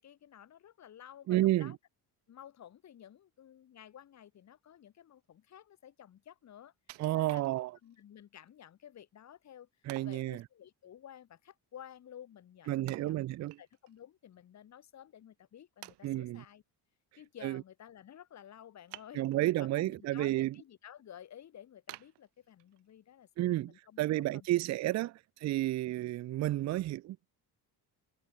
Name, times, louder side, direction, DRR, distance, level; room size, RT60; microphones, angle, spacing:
voice 1, 0.0-1.8 2.3-6.7 7.1-7.4 7.8-9.7 10.0-13.2 13.6-16.6 17.2-19.2 19.6-24.5 24.9-25.0 26.6-26.8, left 10 dB, 40° left, 1.3 m, -53 dB
voice 2, 1.3-1.7 7.0-7.7 9.9-10.4 12.7-13.6 16.0-16.4 17.4-17.6 19.1-20.5 23.4-25.1 25.4-27.2, right 15 dB, 45° right, 0.4 m, -31 dB
Wood, 6.9-8.0 8.5-8.6 9.9-10.3 12.9-14.0 14.3-14.4 15.1-15.2 15.8-16.5 18.9-19.6 20.1-20.6 21.0-21.1 21.9-22.9 23.4-23.5, right 20 dB, 80° right, 0.8 m, -52 dB
cardioid pair, 135°, 41 cm